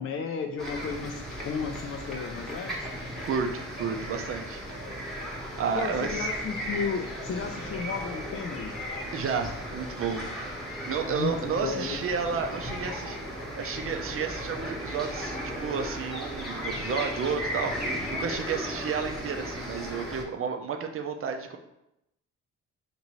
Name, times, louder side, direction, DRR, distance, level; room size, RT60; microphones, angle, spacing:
voice 1, 0.0-2.9 5.7-8.7 11.0-12.0, left 6 dB, 45° left, 3 dB, 0.4 m, -34 dB
sound 1, 0.6-20.2, equal, ahead, 1.1 m, -36 dB
voice 2, 3.2-4.6 5.6-6.3 9.1-10.2 10.9-13.2 13.6-21.6, right 6 dB, 45° right, 4 dB, 0.6 m, -31 dB
5.2 x 2.6 x 3.0 m, 0.87 s
cardioid pair, 90°, 30 cm